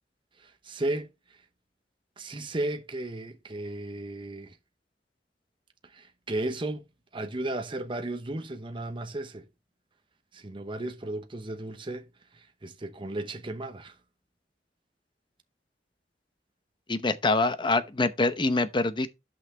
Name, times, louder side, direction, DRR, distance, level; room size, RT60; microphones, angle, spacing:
voice 1, 0.4-1.1 2.2-4.5 5.9-6.9 7.1-9.5 10.3-12.1 12.3-13.9, right 2 dB, 30° right, 0.9 m, -34 dB
voice 2, 16.9-19.1, left 3 dB, 30° left, 0.8 m, -25 dB
11.0 x 5.8 x 3.3 m
head